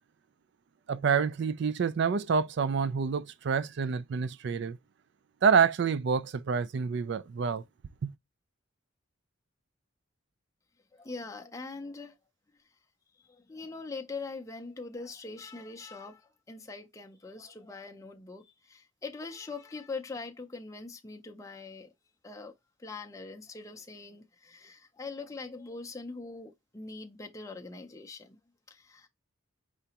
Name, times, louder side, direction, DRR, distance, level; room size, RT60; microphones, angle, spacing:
voice 1, 0.9-4.8 5.4-7.6 8.0-8.1, right 6 dB, 55° right, 0.3 m, -27 dB
voice 2, 10.9-12.2 12.5-12.7 13.2-21.9 22.2-22.5 22.8-28.4 28.7-29.1, left 3 dB, 15° left, 0.5 m, -42 dB
5.0 x 3.3 x 2.8 m
head